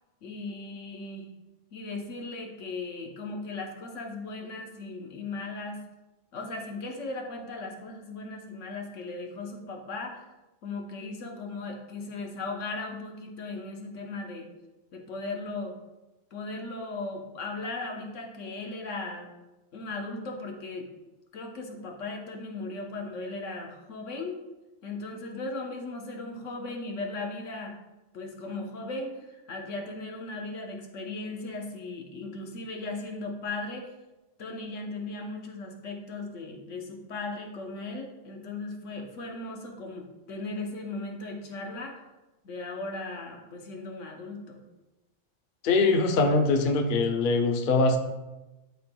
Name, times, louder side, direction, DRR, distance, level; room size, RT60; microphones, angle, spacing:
voice 1, 0.2-1.3 1.7-5.8 6.3-10.3 10.6-14.5 14.9-15.8 16.3-19.3 19.7-20.9 21.3-24.4 24.8-27.8 28.1-33.9 34.4-42.0 42.4-44.6, left 3 dB, 80° left, 2 dB, 1.3 m, -37 dB
voice 2, 45.6-48.0, left 3 dB, 55° left, 5 dB, 0.7 m, -23 dB
11.5 x 4.3 x 2.2 m, 1.0 s
omnidirectional pair, 1.3 m